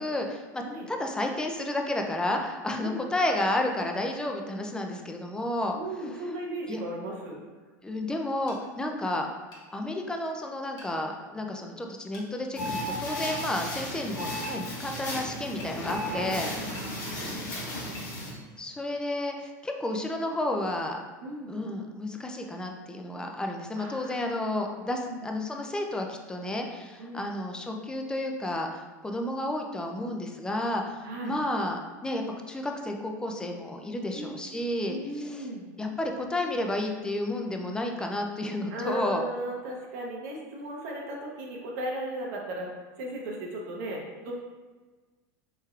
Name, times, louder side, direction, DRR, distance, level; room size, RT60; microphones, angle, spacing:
voice 1, 0.0-5.8 6.7-6.8 7.8-9.3 9.7-16.9 18.6-21.0 21.5-35.4 35.8-39.2, left 1 dB, 10° left, 3 dB, 0.4 m, -31 dB
voice 2, 5.7-7.4 8.8-9.2 16.6-18.0 21.2-21.5 23.7-24.4 25.1-25.3 27.0-27.3 31.0-31.4 34.1-34.4 34.9-35.7 38.7-42.7 43.0-44.3, right 1 dB, 75° right, -2 dB, 0.7 m, -36 dB
sound 1, 8.5-8.6 9.5-9.7 10.8-11.0 12.1-12.3 13.3-13.4 14.4-14.6 15.6-15.8 16.7-16.9 17.9-18.1, left 2 dB, 45° left, 1.1 m, -47 dB
sound 2, 12.5-18.3, left 1 dB, 85° left, 1.2 m, -34 dB
4.3 x 3.1 x 2.4 m, 1.3 s
supercardioid pair, 105°, 9 cm